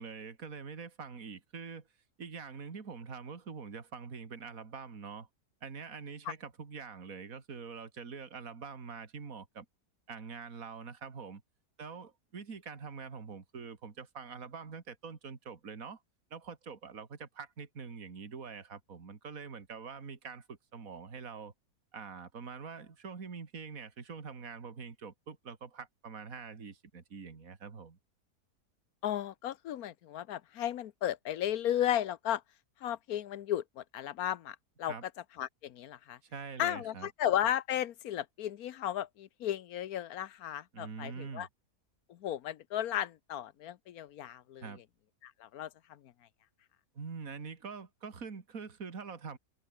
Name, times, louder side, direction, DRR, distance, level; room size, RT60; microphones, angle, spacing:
voice 1, 0.0-1.9 2.2-5.3 5.6-9.7 10.1-11.4 11.8-16.0 16.3-21.5 21.9-28.0 34.8-35.0 36.2-37.1 40.7-41.5 44.6-44.8 46.9-49.4, right 5 dB, 60° right, 2.7 m, -45 dB
voice 2, 29.0-32.4 32.8-34.9 35.4-36.2 36.6-41.5 42.1-44.7 45.2-46.1, left 11 dB, 70° left, 1.2 m, -35 dB
omnidirectional pair, 1.7 m